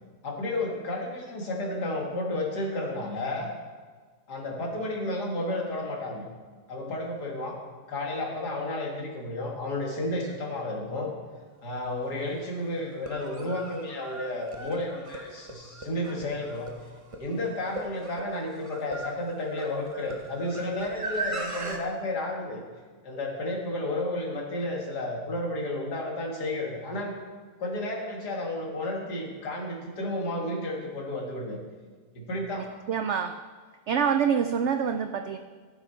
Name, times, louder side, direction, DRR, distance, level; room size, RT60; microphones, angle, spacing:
voice 1, 0.2-3.5 4.3-6.3 6.7-7.6 7.9-11.1 11.6-16.7 17.2-22.6 23.0-27.1 27.6-31.6 32.1-32.7, left 1 dB, 80° left, 0 dB, 2.4 m, -32 dB
sound 1, 11.8-11.9 12.9-21.8, right 2 dB, 25° right, 0.8 m, -38 dB
voice 2, 32.6-33.4 33.9-35.4, right 7 dB, 80° right, 7 dB, 0.6 m, -26 dB
14.5 x 7.0 x 4.4 m, 1.5 s
omnidirectional pair, 1.7 m